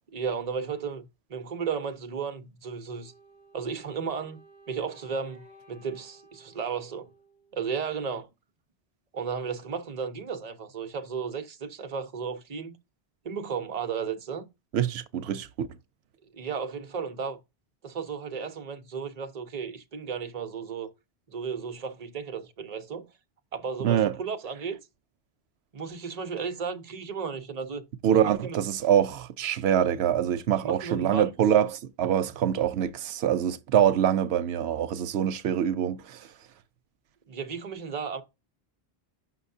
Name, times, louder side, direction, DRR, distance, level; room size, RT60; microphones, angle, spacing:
voice 1, 0.1-3.1 3.5-4.4 4.7-7.1 7.5-8.3 9.1-12.8 13.2-14.5 16.3-17.4 17.8-20.9 21.3-23.1 23.5-24.8 25.7-27.8 28.2-28.6 30.6-31.3 37.3-38.2, right 6 dB, 40° right, 0.9 m, -34 dB
Wind instrument woodwind instrument, 2.9-7.9, right 1 dB, 25° left, 4.2 m, -56 dB
voice 2, 14.7-15.7 23.8-24.1 28.0-36.3, right 9 dB, 90° right, 0.9 m, -25 dB
7.5 x 5.6 x 2.7 m
omnidirectional pair, 1.0 m